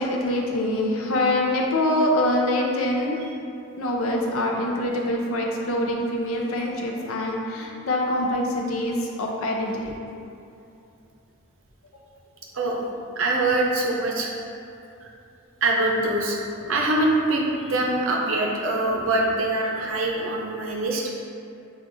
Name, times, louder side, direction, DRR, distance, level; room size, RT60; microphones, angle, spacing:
voice 1, 0.0-3.2 3.8-10.0, left 1 dB, 80° left, 0 dB, 0.5 m, -24 dB
voice 2, 13.2-14.3 15.0-15.1 15.6-16.4 16.7-21.1, right 2 dB, 70° right, -1 dB, 0.6 m, -23 dB
6.2 x 2.4 x 2.6 m, 2.7 s
head